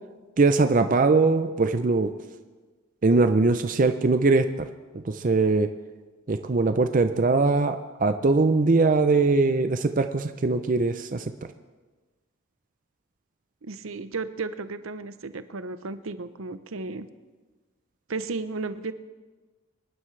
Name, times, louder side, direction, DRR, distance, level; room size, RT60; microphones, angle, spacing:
voice 1, 0.4-2.1 3.0-4.7 5.1-5.7 6.3-11.2, right 3 dB, 40° right, 8 dB, 0.5 m, -21 dB
voice 2, 13.6-17.1 18.1-18.9, right 3 dB, 80° right, 12 dB, 0.7 m, -34 dB
24.0 x 11.0 x 3.3 m, 1.3 s
head